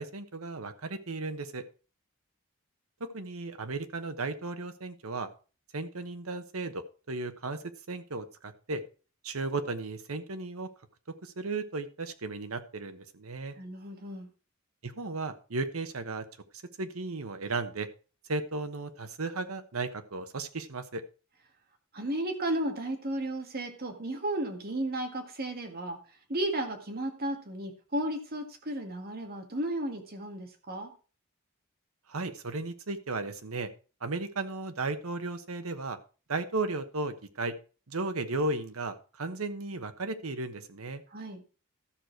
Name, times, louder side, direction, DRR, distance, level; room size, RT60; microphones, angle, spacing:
voice 1, 0.0-1.6 3.1-5.3 5.7-8.8 9.2-10.7 11.2-13.5 14.8-16.2 16.8-17.9 18.3-21.0 32.1-33.7 34.0-36.0 36.3-37.5 37.9-41.0, right 3 dB, 80° right, 9 dB, 1.1 m, -35 dB
voice 2, 13.6-14.3 21.9-26.0 26.3-30.9 41.1-41.4, right 1 dB, 45° right, 4 dB, 1.8 m, -34 dB
13.0 x 6.6 x 4.6 m, 0.36 s
head